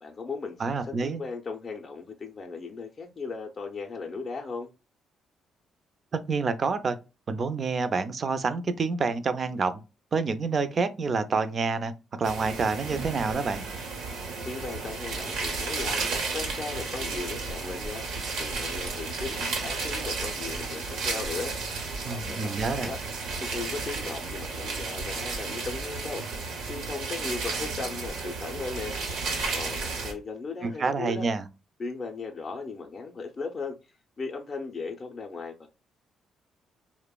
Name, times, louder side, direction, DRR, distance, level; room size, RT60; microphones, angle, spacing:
voice 1, 0.0-4.7 14.4-16.0 16.3-18.0 18.4-21.5 22.0-23.0 23.4-26.4 26.7-29.0 29.5-31.3 31.8-33.8 34.2-35.7, left 4 dB, 35° left, 0.4 m, -37 dB
voice 2, 0.6-1.2 6.1-7.0 7.3-9.8 10.1-13.6 22.0-22.9 30.6-31.4, right 4 dB, 45° right, 0.3 m, -28 dB
sound 1, 12.2-30.1, right 4 dB, 90° right, 0.9 m, -33 dB
2.8 x 2.0 x 2.2 m
cardioid pair, 90°, 0 cm